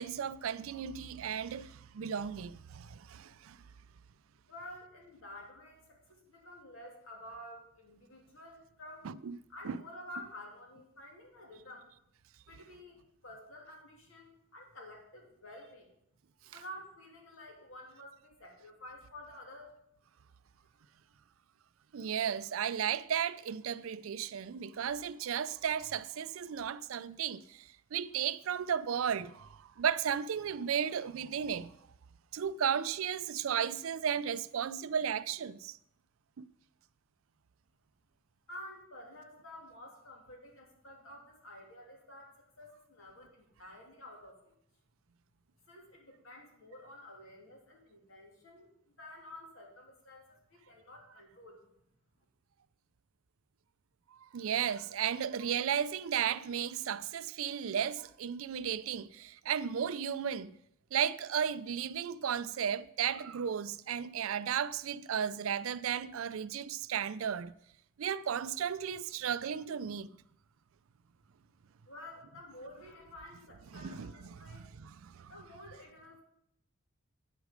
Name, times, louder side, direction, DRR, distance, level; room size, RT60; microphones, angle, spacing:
voice 1, 0.0-3.6 9.0-9.4 9.6-9.8 21.9-31.8 32.3-35.8 36.4-36.5 54.2-60.5 60.9-67.5 68.0-70.1 73.7-75.3, right 8 dB, 70° right, 0.4 m, -34 dB
voice 2, 4.5-9.1 9.5-11.9 12.5-15.9 16.5-19.7 38.5-44.5 45.7-51.6 71.9-74.7 75.3-76.2, left 1 dB, 65° left, 2.6 m, -51 dB
9.2 x 8.1 x 5.0 m
head